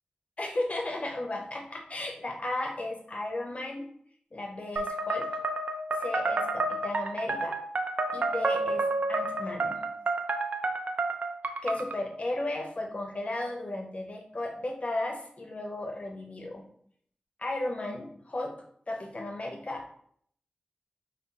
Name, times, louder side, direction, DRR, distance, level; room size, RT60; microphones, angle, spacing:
voice 1, 0.4-3.9 4.3-5.3 6.0-7.6 8.1-9.8 11.6-16.6 17.4-18.5 18.9-20.0, left 1 dB, 45° left, 1 dB, 0.7 m, -34 dB
sound 1, 4.8-12.0, right 2 dB, 65° right, 0.4 m, -30 dB
3.8 x 2.0 x 4.0 m, 0.64 s
wide cardioid pair, 70°, 3 cm